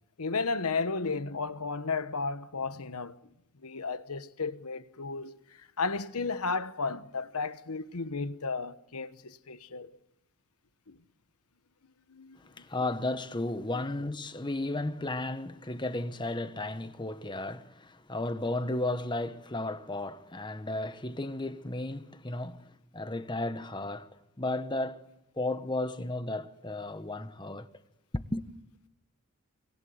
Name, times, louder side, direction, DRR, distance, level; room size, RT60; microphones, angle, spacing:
voice 1, 0.2-3.2 3.6-5.4 5.8-9.9 10.9-11.0 12.1-12.4, left 4 dB, 85° left, 1.2 m, -33 dB
voice 2, 12.4-22.7 22.9-24.1 24.4-25.1 25.4-27.7 28.1-28.5, left 2 dB, 20° left, 1.2 m, -34 dB
29.0 x 25.0 x 8.0 m
head